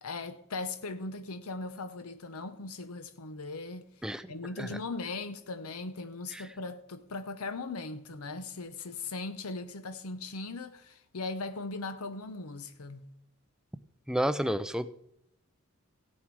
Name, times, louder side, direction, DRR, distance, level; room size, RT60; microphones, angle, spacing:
voice 1, 0.0-3.9 4.3-13.1, left 3 dB, 75° left, 0.8 m, -39 dB
voice 2, 14.1-15.0, equal, 5° right, 0.4 m, -31 dB
16.5 x 7.2 x 4.7 m
head